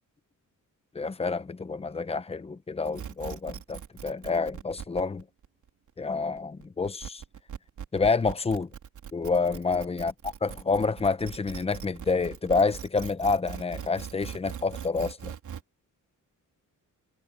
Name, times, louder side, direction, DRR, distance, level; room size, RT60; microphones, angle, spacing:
voice 1, 0.9-5.2 6.0-7.2 7.9-8.7 9.1-10.1 10.4-15.3, left 4 dB, 20° left, 0.8 m, -28 dB
sound 1, 2.8-15.6, right 8 dB, 60° right, 3.5 m, -41 dB
wide cardioid pair, 175°, 33 cm